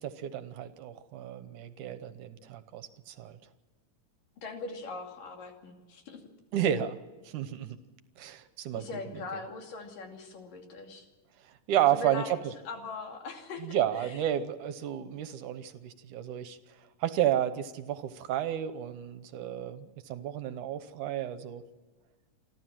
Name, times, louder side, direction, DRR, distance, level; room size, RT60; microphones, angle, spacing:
voice 1, 0.0-3.3 6.5-7.0 7.2-7.8 8.2-8.9 11.7-12.4 13.6-16.6 17.0-21.6, right 11 dB, 75° right, 11 dB, 2.4 m, -31 dB
voice 2, 4.4-6.2 8.8-11.1 11.9-12.4 12.7-14.3, left 4 dB, 80° left, 3 dB, 4.2 m, -41 dB
28.5 x 12.5 x 7.5 m, 1.3 s
omnidirectional pair, 3.8 m